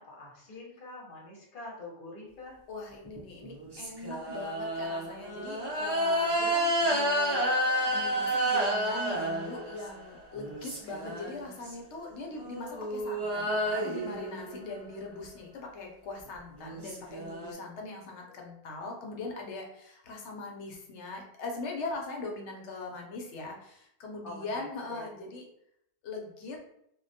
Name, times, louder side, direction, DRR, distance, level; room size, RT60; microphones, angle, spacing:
voice 1, 0.0-2.6 24.2-25.0, left 2 dB, 50° left, -3 dB, 0.9 m, -45 dB
voice 2, 2.7-7.4 7.9-25.4 26.0-26.6, left 3 dB, 80° left, 1 dB, 0.9 m, -41 dB
sound 1, 3.1-10.0 10.4-11.7 12.3-15.0 16.3-16.4 16.6-17.5, right 1 dB, 35° right, 0.4 m, -30 dB
2.2 x 2.1 x 2.6 m, 0.74 s
omnidirectional pair, 1.2 m